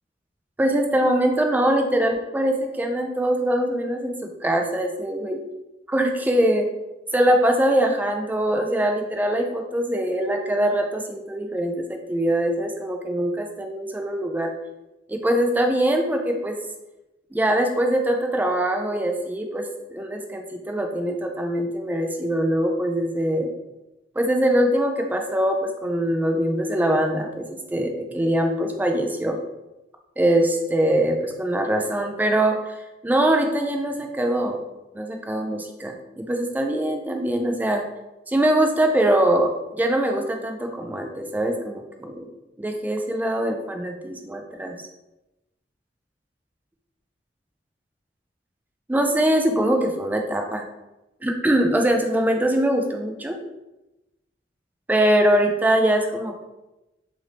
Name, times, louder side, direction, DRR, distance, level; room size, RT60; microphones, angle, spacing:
voice 1, 0.6-5.4 5.9-6.7 7.1-14.5 15.1-16.6 17.3-23.5 24.2-29.4 30.2-32.8 33.0-34.6 34.9-37.8 38.3-42.3 42.6-44.8 48.9-50.6 51.2-53.4 54.9-56.5, right 1 dB, 10° right, 3 dB, 0.3 m, -23 dB
3.0 x 2.5 x 3.2 m, 0.99 s
head